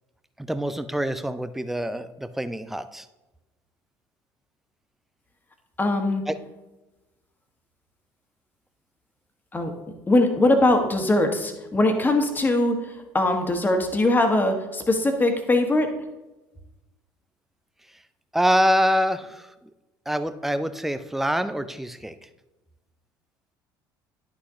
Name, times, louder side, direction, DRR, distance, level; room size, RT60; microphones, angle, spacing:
voice 1, 0.4-3.1 6.3-6.4 18.3-19.5 20.1-22.1, equal, 5° right, 12 dB, 0.5 m, -25 dB
voice 2, 5.8-6.2 9.5-9.7 10.1-15.9, left 2 dB, 15° left, 5 dB, 1.3 m, -21 dB
11.0 x 6.0 x 2.8 m, 1.1 s
figure-of-eight pair, 60°, 11 cm